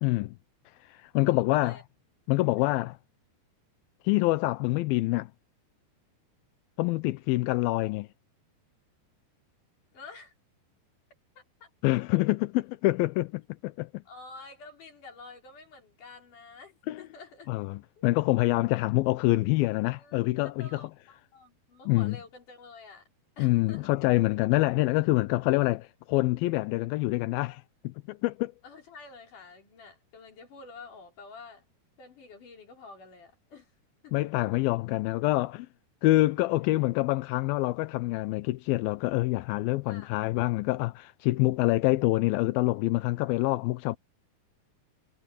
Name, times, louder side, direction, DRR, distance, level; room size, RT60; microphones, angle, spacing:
voice 1, 0.0-0.3 0.8-1.8 2.3-3.0 4.0-5.3 6.8-8.1 11.8-13.9 16.9-17.0 17.5-20.8 21.9-22.2 23.4-28.5 34.1-35.7 36.0-44.0, left 19 dB, 80° left, 2.3 m, -26 dB
voice 2, 1.3-1.8 9.9-10.3 11.4-11.7 14.1-17.5 18.0-18.1 19.9-20.3 20.6-23.1 23.4-23.9 28.6-31.7 32.0-33.7 34.0-34.2 39.9-40.4, left 4 dB, 50° left, 5.7 m, -49 dB
omnidirectional pair, 4.7 m